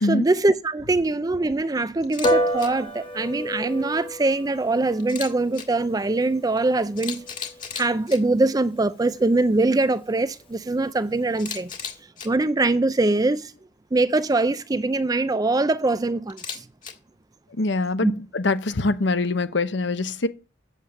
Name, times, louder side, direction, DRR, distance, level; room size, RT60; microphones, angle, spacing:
voice 1, 0.0-7.3 7.7-11.7 12.2-13.5 13.9-16.6 18.0-18.1, right 2 dB, 20° right, 0.4 m, -23 dB
Camera, 2.0-2.3 2.6-2.7 5.0-5.6 6.6-6.7 7.0-8.2 11.4-12.3 16.3-16.9, left 7 dB, 45° left, 1.8 m, -34 dB
Piano, 2.2-12.0, equal, 30° left, 1.3 m, -32 dB
voice 2, 17.6-20.3, left 2 dB, 65° left, 0.9 m, -24 dB
8.1 x 7.4 x 6.5 m
head